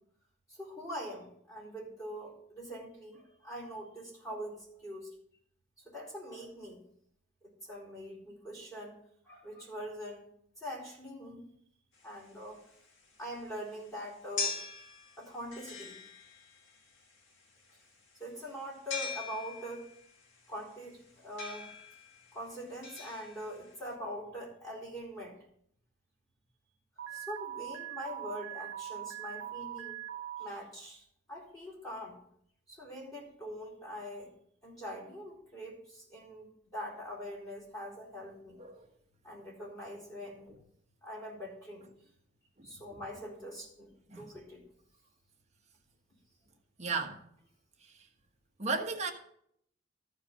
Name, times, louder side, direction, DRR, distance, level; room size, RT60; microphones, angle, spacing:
voice 1, 0.5-5.1 5.8-6.8 7.4-9.0 9.2-10.2 10.6-11.5 12.0-12.6 13.2-14.6 15.2-16.0 18.2-19.9 20.5-21.7 22.3-25.4 27.1-30.0 30.4-32.2 32.7-34.3 34.6-38.6 39.2-40.5 41.0-41.9 42.6-44.6, equal, 20° left, 4.2 m, -43 dB
sound 1, 12.0-23.9, left 5 dB, 90° left, 2.2 m, -43 dB
Alarm, 27.0-30.5, right 11 dB, 85° right, 1.1 m, -41 dB
voice 2, 42.6-43.0 44.1-44.3 46.8-47.2 47.8-48.1 48.6-49.1, right 4 dB, 35° right, 1.2 m, -36 dB
14.0 x 4.8 x 5.9 m
head